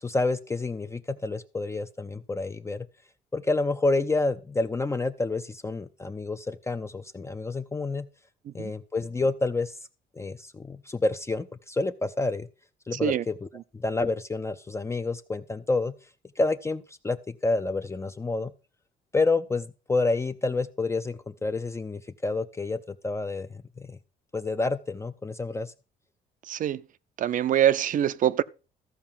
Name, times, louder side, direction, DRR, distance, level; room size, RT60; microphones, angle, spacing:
voice 1, 0.0-2.9 3.3-8.1 8.5-9.8 10.1-12.5 12.9-13.5 13.7-15.9 16.4-18.5 19.1-24.0 24.3-25.7, left 3 dB, 15° left, 0.6 m, -29 dB
voice 2, 26.5-26.8 27.2-28.4, right 10 dB, 50° right, 0.6 m, -24 dB
14.0 x 4.8 x 7.4 m
cardioid pair, 110°, 17 cm